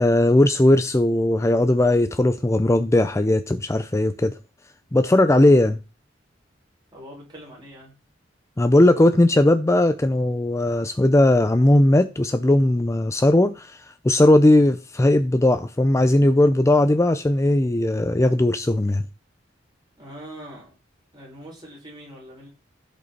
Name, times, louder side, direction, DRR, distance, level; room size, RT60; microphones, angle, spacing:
voice 1, 0.0-4.4 4.9-5.8 8.6-19.0, left 1 dB, 15° left, 0.5 m, -18 dB
voice 2, 6.9-7.9 20.0-20.7 21.1-22.5, equal, 25° right, 5.9 m, -42 dB
15.0 x 5.3 x 4.2 m
head